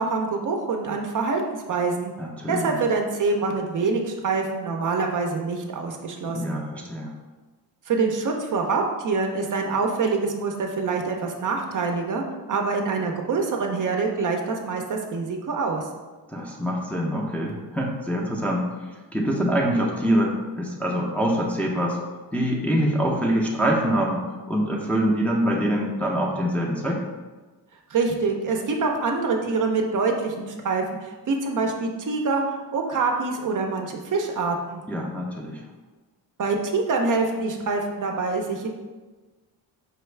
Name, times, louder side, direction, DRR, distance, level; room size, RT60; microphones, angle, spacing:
voice 1, 0.0-2.1 2.5-6.6 7.9-12.2 12.5-15.8 27.9-34.8 36.4-38.7, right 4 dB, 50° right, 2 dB, 0.5 m, -25 dB
voice 2, 2.2-2.8 6.3-7.1 16.3-18.6 19.1-22.0 22.3-24.2 24.5-27.0 34.9-35.6, equal, 5° left, -3 dB, 0.5 m, -24 dB
5.0 x 2.3 x 3.2 m, 1.3 s
cardioid pair, 105°, 41 cm